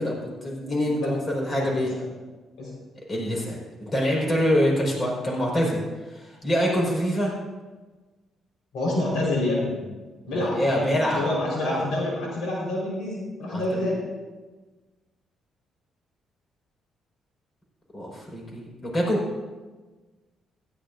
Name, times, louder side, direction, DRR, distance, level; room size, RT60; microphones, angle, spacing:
voice 1, 0.0-1.9 3.1-5.8 6.1-7.3 10.3-11.3 11.6-11.8 13.5-13.9 17.9-19.2, equal, 30° left, -2 dB, 4.8 m, -25 dB
voice 2, 1.5-2.1 2.6-2.7 8.7-9.8 10.3-13.9, left 1 dB, 80° left, -3 dB, 4.4 m, -27 dB
16.5 x 13.5 x 2.6 m, 1.3 s
cardioid pair, 90°, 0 cm